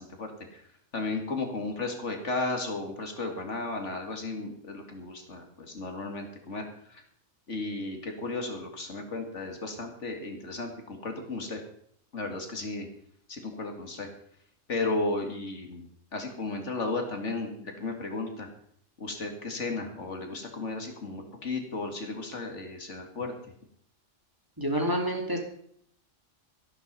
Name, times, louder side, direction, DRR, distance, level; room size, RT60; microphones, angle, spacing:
voice 1, 0.0-7.0 7.5-11.6 12.1-12.9 13.3-14.1 14.7-18.5 19.0-23.3, left 3 dB, 70° left, 4 dB, 2.4 m, -34 dB
voice 2, 24.6-25.4, right 1 dB, 15° right, 1 dB, 2.8 m, -28 dB
13.0 x 11.5 x 5.5 m, 0.66 s
omnidirectional pair, 1.3 m